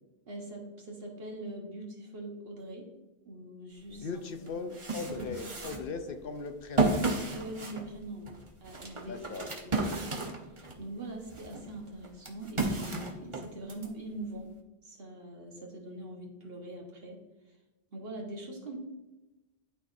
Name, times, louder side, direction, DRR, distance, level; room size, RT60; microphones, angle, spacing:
voice 1, 0.3-2.9 3.2-4.1 4.4-4.7 5.2-5.7 7.3-9.2 9.5-9.9 10.8-14.5 14.8-17.2 17.9-18.8, right 1 dB, 65° right, 0 dB, 1.5 m, -43 dB
voice 2, 3.9-7.0 9.1-9.5, left 4 dB, 65° left, 8 dB, 0.7 m, -39 dB
sound 1, 3.9-4.0 4.5-10.8 11.3-13.9, right 3 dB, 30° right, 0.9 m, -33 dB
11.5 x 4.1 x 2.6 m, 1.1 s
omnidirectional pair, 1.1 m